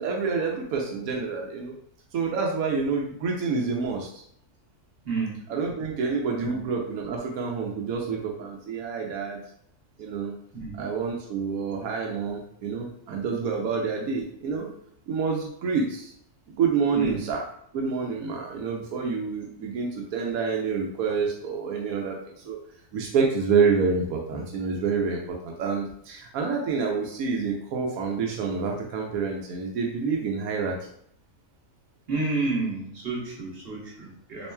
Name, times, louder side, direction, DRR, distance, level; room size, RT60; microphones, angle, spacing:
voice 1, 0.0-1.7 2.1-4.2 5.5-9.4 10.0-10.3 10.8-14.7 15.1-16.1 16.6-17.4 17.7-22.6 22.9-30.7, right 5 dB, 85° right, 0 dB, 1.1 m, -28 dB
voice 2, 5.0-5.4 6.4-6.6 10.5-10.8 16.9-17.2 32.1-34.5, right 3 dB, 45° right, -3 dB, 1.2 m, -30 dB
4.3 x 3.0 x 2.2 m, 0.67 s
omnidirectional pair, 1.5 m